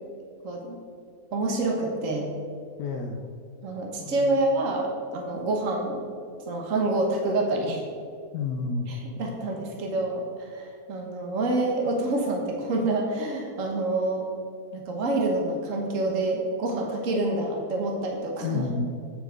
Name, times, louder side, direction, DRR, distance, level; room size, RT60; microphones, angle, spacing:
voice 1, 0.4-0.8 1.3-2.3 3.6-6.0 6.5-7.8 8.9-14.3 14.7-18.7, right 2 dB, 60° right, 1 dB, 1.6 m, -27 dB
voice 2, 2.8-3.3 4.0-4.4 8.3-8.9 18.4-18.9, left 4 dB, 85° left, 3 dB, 1.3 m, -30 dB
9.1 x 7.9 x 5.0 m, 2.3 s
omnidirectional pair, 1.6 m